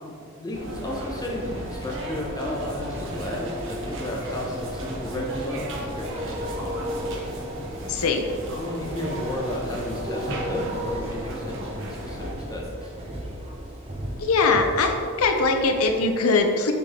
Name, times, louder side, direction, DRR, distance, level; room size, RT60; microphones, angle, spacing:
voice 1, 0.0-6.8 8.5-12.9, left 1 dB, 20° left, -2 dB, 0.9 m, -33 dB
sound 1, 0.5-12.3, equal, 60° right, 1.0 m, -35 dB
sound 2, 0.9-16.1, equal, 30° right, 0.8 m, -36 dB
voice 2, 7.9-8.2 14.2-16.7, left 3 dB, 85° left, 4 dB, 0.6 m, -21 dB
6.9 x 3.8 x 3.6 m, 2.2 s
head